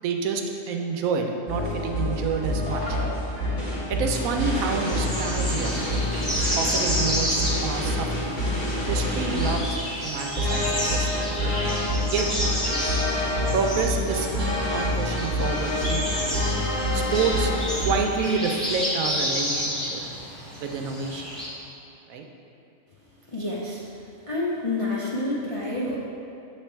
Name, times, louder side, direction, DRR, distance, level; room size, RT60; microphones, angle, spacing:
voice 1, 0.0-3.0 3.9-5.8 6.6-8.1 8.9-9.8 10.0-11.5 12.1-12.3 13.5-16.2 16.9-17.5 17.8-20.0 20.6-21.2 22.1-22.2, right 5 dB, 90° right, 3 dB, 1.0 m, -28 dB
sound 1, 1.5-18.0, left 1 dB, 30° left, 1.5 m, -27 dB
sound 2, 4.4-21.5, equal, ahead, 1.3 m, -31 dB
voice 2, 23.3-23.8 24.3-26.0, left 2 dB, 50° left, -7 dB, 0.3 m, -28 dB
6.7 x 3.3 x 4.4 m, 2.7 s
omnidirectional pair, 1.4 m